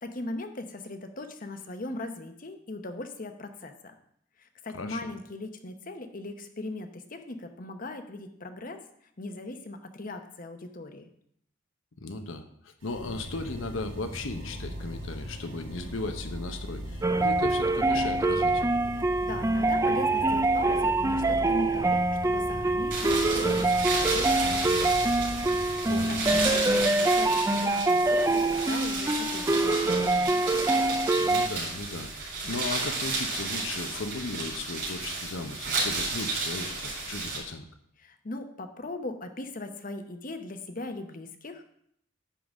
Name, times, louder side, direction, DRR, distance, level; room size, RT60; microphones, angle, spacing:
voice 1, 0.0-3.9 4.4-8.8 9.2-11.0 19.2-24.9 25.5-25.8 26.1-30.4 38.0-41.6, left 2 dB, 40° left, 7 dB, 0.8 m, -39 dB
voice 2, 12.0-12.4 12.8-18.6 25.9-26.2 31.2-37.6, left 3 dB, 70° left, 7 dB, 0.8 m, -36 dB
sound 1, 12.8-26.5, equal, 85° right, 1.9 m, -39 dB
sound 2, 17.0-31.5, right 2 dB, 15° right, 0.4 m, -25 dB
sound 3, 22.9-37.4, right 3 dB, 55° right, 3.8 m, -32 dB
10.0 x 3.9 x 7.1 m, 0.70 s
head